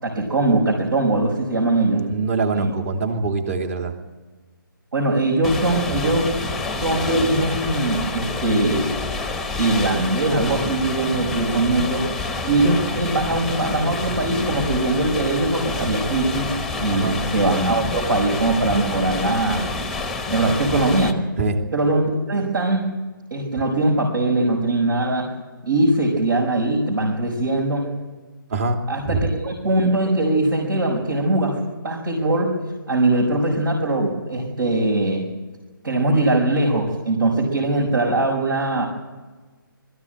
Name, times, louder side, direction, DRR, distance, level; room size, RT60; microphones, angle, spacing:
voice 1, 0.0-2.1 2.5-2.7 4.9-6.4 6.8-8.9 9.6-12.1 12.4-16.5 16.8-19.7 20.3-21.2 21.7-22.9 23.3-25.3 25.6-27.9 28.9-32.5 32.9-35.2 35.8-38.9, right 2 dB, 70° right, -2 dB, 5.7 m, -21 dB
voice 2, 1.9-3.9 16.9-17.2 21.4-21.7 28.5-29.3, right 3 dB, 40° right, 4 dB, 3.0 m, -24 dB
sound 1, 5.4-21.1, left 3 dB, ahead, 1.0 m, -28 dB
21.5 x 15.0 x 9.0 m, 1.3 s
figure-of-eight pair, 155°, 12 cm